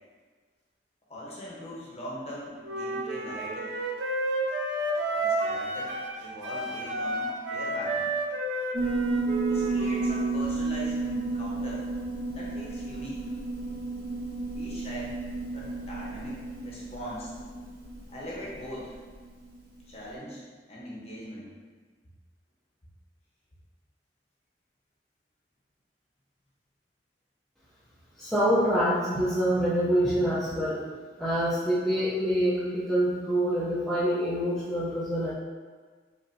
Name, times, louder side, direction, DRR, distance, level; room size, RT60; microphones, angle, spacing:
voice 1, 1.1-3.7 5.1-8.1 9.5-11.9 12.3-13.3 14.5-15.2 15.5-17.3 18.1-19.0 19.9-20.4 20.7-21.5, equal, 35° left, -6 dB, 1.0 m, -41 dB
Wind instrument woodwind instrument, 2.6-6.2 6.4-10.3, right 2 dB, 85° right, 0.6 m, -31 dB
Piano, 8.7-19.5, right 3 dB, 55° right, 1.1 m, -32 dB
voice 2, 28.2-30.8 31.2-35.3, equal, 5° left, -10 dB, 0.6 m, -26 dB
5.3 x 2.7 x 2.7 m, 1.5 s
head